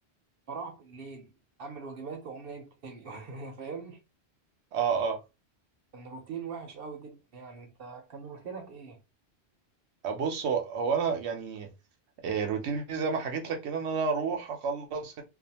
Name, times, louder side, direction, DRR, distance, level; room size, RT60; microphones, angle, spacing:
voice 1, 0.5-1.3 1.6-4.0 5.9-9.0, right 5 dB, 60° right, 0.9 m, -41 dB
voice 2, 4.7-5.2 10.0-11.7 12.2-15.2, right 5 dB, 85° right, 1.0 m, -30 dB
2.4 x 2.4 x 2.8 m
omnidirectional pair, 1.1 m